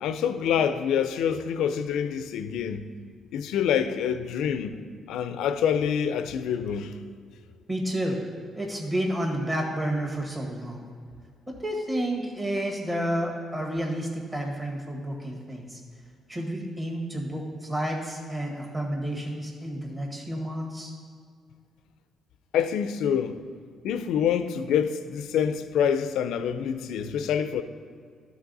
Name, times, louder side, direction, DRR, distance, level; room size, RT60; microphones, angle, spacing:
voice 1, 0.0-2.9 3.3-4.8 5.1-7.0 22.5-23.4 23.8-27.6, left 8 dB, 85° left, 0.4 m, -26 dB
voice 2, 7.7-8.2 8.5-10.9 11.5-15.8 16.3-20.9, right 1 dB, 20° right, 1.8 m, -30 dB
12.0 x 4.1 x 4.0 m
cardioid pair, 90°, 0 cm